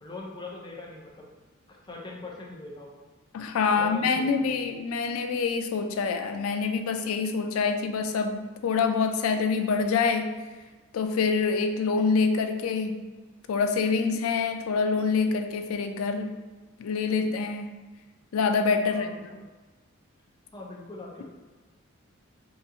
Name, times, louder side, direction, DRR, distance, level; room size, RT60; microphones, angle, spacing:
voice 1, 0.0-1.3 1.7-3.0 3.7-4.8 18.8-19.2 20.5-21.2, left 2 dB, 20° left, -3 dB, 0.5 m, -42 dB
voice 2, 3.3-10.4 10.9-13.0 13.5-16.4 16.8-17.7 18.3-19.1, left 5 dB, 85° left, 6 dB, 0.3 m, -26 dB
3.8 x 2.4 x 2.7 m, 1.3 s
head